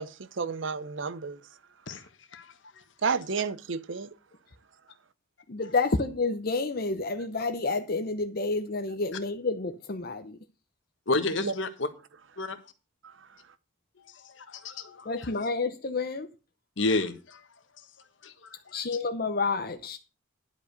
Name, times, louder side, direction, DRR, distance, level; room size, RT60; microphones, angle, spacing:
voice 1, 0.0-1.4 3.0-4.1 11.4-11.5, right 5 dB, 75° right, 0.7 m, -31 dB
voice 2, 5.5-10.4 15.0-16.3 18.7-20.0, left 3 dB, 50° left, 0.8 m, -29 dB
voice 3, 11.1-11.9 12.4-12.6 14.4-15.3 16.8-17.4 18.2-18.3, left 2 dB, 75° left, 1.4 m, -30 dB
11.0 x 5.2 x 6.6 m
head